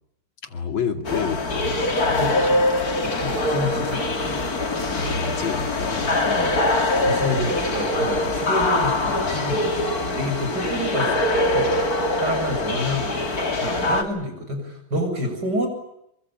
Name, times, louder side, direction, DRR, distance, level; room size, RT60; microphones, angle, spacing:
voice 1, 0.4-2.6 4.9-6.1, left 5 dB, 70° left, 7 dB, 3.4 m, -29 dB
sound 1, 1.0-14.0, left 2 dB, 45° left, 3.3 m, -23 dB
voice 2, 3.0-4.6 6.2-11.8 12.2-15.7, equal, 50° right, 6 dB, 8.4 m, -29 dB
27.0 x 24.5 x 8.6 m, 0.79 s
omnidirectional pair, 2.3 m